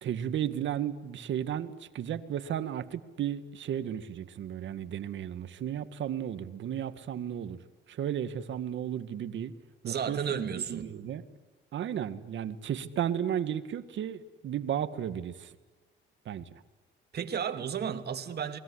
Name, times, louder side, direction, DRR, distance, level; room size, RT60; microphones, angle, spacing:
voice 1, 0.0-7.6 7.9-9.5 9.8-11.3 11.7-15.5 16.3-16.5, right 10 dB, 70° right, 1.9 m, -34 dB
voice 2, 9.8-10.9 17.1-18.6, right 8 dB, 55° right, 2.6 m, -33 dB
28.5 x 21.0 x 10.0 m
cardioid pair, 90°, 20 cm